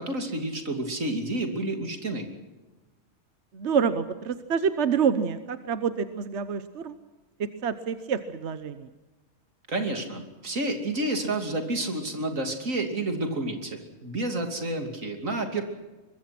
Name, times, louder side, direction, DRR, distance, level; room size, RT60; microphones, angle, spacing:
voice 1, 0.0-2.3 9.7-15.6, right 2 dB, 85° right, 5 dB, 3.2 m, -30 dB
voice 2, 3.5-6.9 7.4-8.9, right 6 dB, 60° right, 11 dB, 1.2 m, -27 dB
24.0 x 22.0 x 6.0 m, 1.2 s
omnidirectional pair, 1.3 m